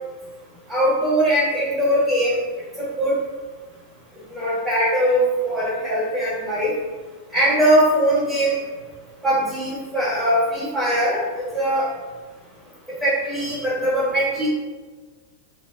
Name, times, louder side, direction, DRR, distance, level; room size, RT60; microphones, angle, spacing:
voice 1, 0.7-2.4 2.8-3.2 4.3-6.7 7.3-8.6 9.2-11.2 11.5-11.9 13.0-14.5, equal, 5° right, -10 dB, 1.0 m, -21 dB
3.4 x 2.1 x 2.3 m, 1.4 s
figure-of-eight pair, 90°, 0 cm